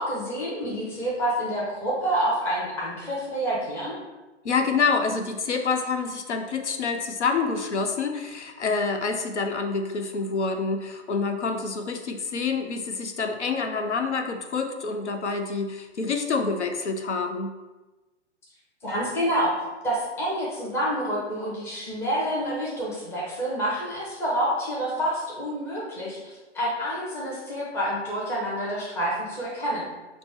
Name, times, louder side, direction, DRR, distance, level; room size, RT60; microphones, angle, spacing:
voice 1, 0.0-4.0 18.8-29.9, right 1 dB, 5° left, -5 dB, 0.5 m, -28 dB
voice 2, 4.4-17.5, left 4 dB, 75° left, 5 dB, 0.6 m, -27 dB
5.8 x 2.1 x 3.5 m, 1.1 s
figure-of-eight pair, 115°, 35 cm